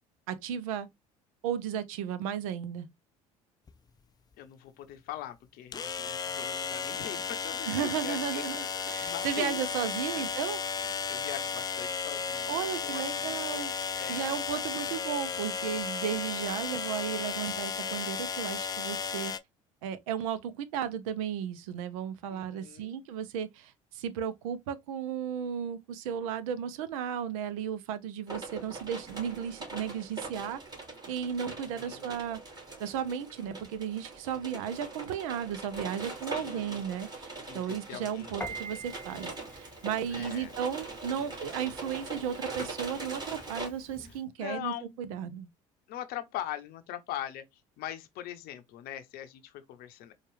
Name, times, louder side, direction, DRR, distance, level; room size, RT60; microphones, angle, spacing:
voice 1, 0.3-0.9 1.4-2.9 7.7-10.6 12.5-13.7 14.1-19.3 19.8-30.6 31.1-32.4 32.8-45.5, right 8 dB, 70° right, 0.6 m, -34 dB
sound 1, 3.7-3.8 5.7-19.4, left 6 dB, 20° left, 0.4 m, -34 dB
voice 2, 4.4-9.6 10.1-10.3 10.7-13.6 13.9-14.6 22.3-23.1 31.6-32.1 36.3-36.8 37.5-38.4 40.1-40.5 41.1-41.3 44.4-45.0 45.9-47.5 47.8-50.1, left 12 dB, 60° left, 0.7 m, -42 dB
sound 2, 28.3-43.7, right 3 dB, 25° right, 2.5 m, -42 dB
Piano, 38.4-44.2, right 2 dB, 5° left, 1.1 m, -47 dB
4.4 x 2.4 x 3.2 m
hypercardioid pair, 60°, 18 cm